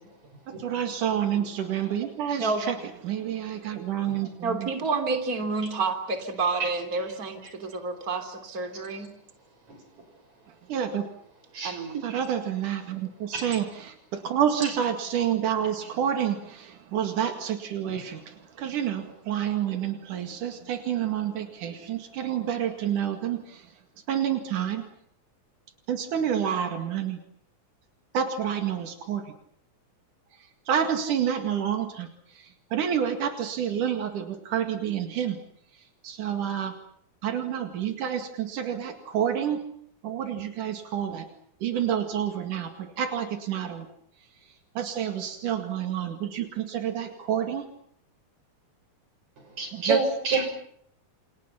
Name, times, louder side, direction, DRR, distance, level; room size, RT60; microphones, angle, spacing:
voice 1, 0.5-2.8 3.0-4.7 10.7-11.1 12.0-23.8 24.1-24.9 25.9-27.2 28.1-29.3 30.4-35.4 35.7-36.7 37.2-39.6 40.0-41.3 41.6-43.9 44.8-47.7 49.7-50.0, right 9 dB, 85° right, 6 dB, 3.7 m, -29 dB
voice 2, 4.4-9.1 11.6-12.1, right 4 dB, 30° right, 6 dB, 3.6 m, -29 dB
voice 3, 49.6-50.5, right 3 dB, 65° right, 6 dB, 7.5 m, -27 dB
29.0 x 28.5 x 5.8 m, 0.67 s
omnidirectional pair, 3.5 m